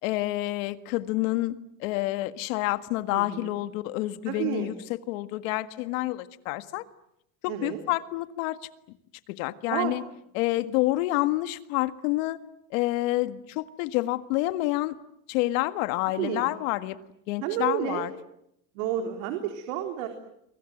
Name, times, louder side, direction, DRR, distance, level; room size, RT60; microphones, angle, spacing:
voice 1, 0.0-6.8 7.4-8.6 9.4-10.0 10.3-12.4 12.7-15.0 15.3-17.0 17.3-18.1, left 18 dB, 75° left, 11 dB, 1.9 m, -28 dB
voice 2, 3.1-3.6 4.3-4.7 7.5-7.8 9.7-9.9 16.2-16.5 17.4-18.1 18.7-20.1, right 10 dB, 75° right, 5 dB, 3.9 m, -30 dB
30.0 x 24.0 x 7.9 m, 0.78 s
supercardioid pair, 125°, 40 cm